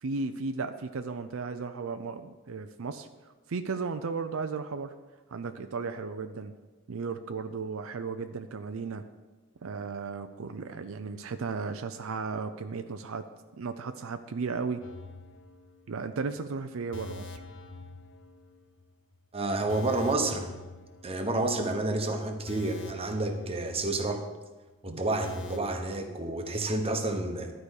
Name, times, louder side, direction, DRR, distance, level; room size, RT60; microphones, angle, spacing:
voice 1, 0.0-4.9 5.3-6.5 6.9-9.0 9.6-13.2 13.6-14.8 15.9-17.4 24.9-25.0, right 4 dB, 80° right, 8 dB, 0.5 m, -35 dB
sound 1, 14.8-16.1 16.4-16.5 16.9-18.9 19.1-19.3 19.7-21.6 21.9-22.0 22.5-24.4 24.7-24.8 25.2-25.6, left 3 dB, 65° left, 0.7 m, -45 dB
voice 2, 19.3-20.5 21.0-24.2 24.8-27.5, right 2 dB, 30° right, 4 dB, 1.1 m, -29 dB
12.0 x 5.0 x 6.4 m, 1.2 s
head